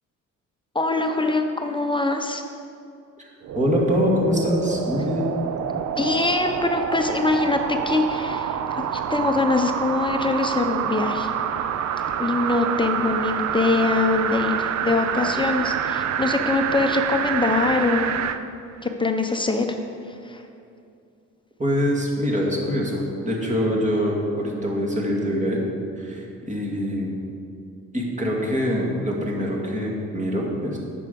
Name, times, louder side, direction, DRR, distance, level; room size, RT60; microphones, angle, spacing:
voice 1, 0.7-2.4 5.8-11.3 12.2-18.2 18.8-19.8 20.1-20.4, left 3 dB, 15° left, 5 dB, 0.7 m, -23 dB
sound 1, 3.4-18.4 18.9-19.0, right 8 dB, 65° right, 0.5 m, -27 dB
voice 2, 3.5-5.3 21.6-25.6 26.0-27.2 27.9-30.8, equal, 25° right, -2 dB, 2.0 m, -24 dB
9.3 x 6.2 x 5.2 m, 2.4 s
cardioid pair, 90°, 30 cm